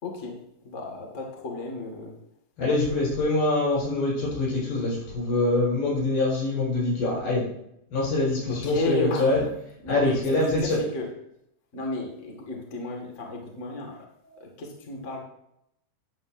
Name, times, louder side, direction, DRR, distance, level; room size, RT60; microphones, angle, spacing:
voice 1, 0.0-2.2 8.5-9.4 9.8-11.1 11.7-15.2, left 2 dB, 35° left, 1 dB, 1.2 m, -33 dB
voice 2, 2.6-7.5 7.9-9.4 9.8-10.8, left 2 dB, 70° left, -4 dB, 6.8 m, -24 dB
12.0 x 11.0 x 2.7 m, 0.78 s
omnidirectional pair, 4.7 m